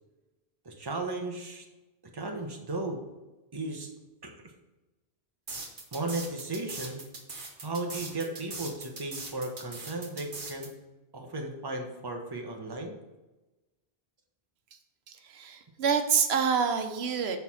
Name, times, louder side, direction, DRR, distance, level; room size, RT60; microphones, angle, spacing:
voice 1, 0.6-1.6 2.1-3.0 3.5-3.9 4.2-4.3 5.9-7.0 7.6-10.7 11.1-12.9, right 2 dB, 25° right, 2 dB, 1.0 m, -35 dB
sound 1, 5.5-10.7, right 3 dB, 55° right, 1.4 m, -40 dB
voice 2, 15.1-17.4, right 6 dB, 85° right, 7 dB, 1.0 m, -27 dB
6.5 x 4.7 x 5.6 m, 1.1 s
omnidirectional pair, 1.0 m